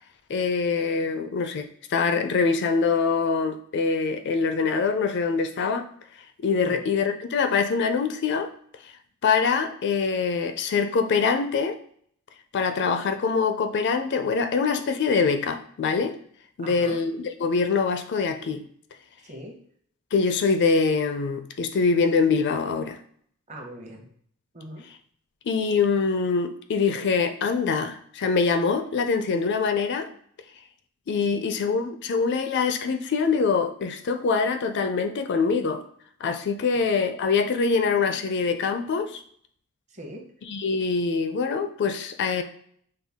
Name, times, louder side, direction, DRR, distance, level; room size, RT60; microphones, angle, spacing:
voice 1, 0.3-5.9 6.4-8.5 9.2-11.8 12.5-16.2 16.6-18.6 20.1-23.0 25.5-30.1 31.1-35.8 36.2-39.2 40.4-42.4, left 5 dB, 50° left, 8 dB, 0.4 m, -24 dB
voice 2, 16.6-17.0 19.2-19.6 23.5-24.1 24.5-24.8 31.3-31.5 39.9-40.2, right 1 dB, 30° right, 1 dB, 0.9 m, -40 dB
5.5 x 2.3 x 3.5 m, 0.62 s
head